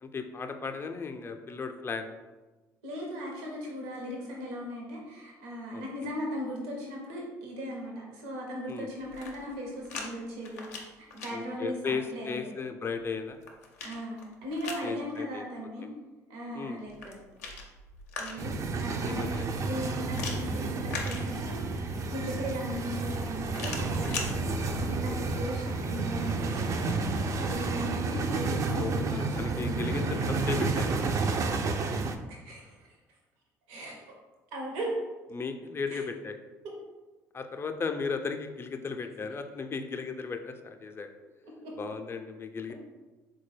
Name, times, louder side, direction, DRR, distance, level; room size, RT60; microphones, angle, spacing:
voice 1, 0.0-2.0 5.7-5.8 8.7-8.9 11.3-13.4 14.8-15.4 16.5-16.8 19.0-19.6 25.1-25.2 28.7-31.1 35.3-36.4 37.3-41.1 41.8-42.7, left 5 dB, 30° left, 6 dB, 0.4 m, -35 dB
voice 2, 2.8-12.7 13.8-15.9 16.3-17.2 18.2-19.3 19.6-30.2 32.3-32.9 33.7-33.9 34.5-34.9 35.9-36.0 36.6-36.8 41.4-41.8, equal, 75° right, -1 dB, 0.8 m, -38 dB
sound 1, 9.0-10.1 10.4-11.3 13.0-14.9 16.9-18.6 20.1-21.7 23.5-24.3, left 4 dB, 85° left, 0.5 m, -40 dB
sound 2, 18.4-32.2, right 3 dB, 40° right, 0.3 m, -31 dB
3.8 x 2.2 x 3.2 m, 1.2 s
hypercardioid pair, 60°, 8 cm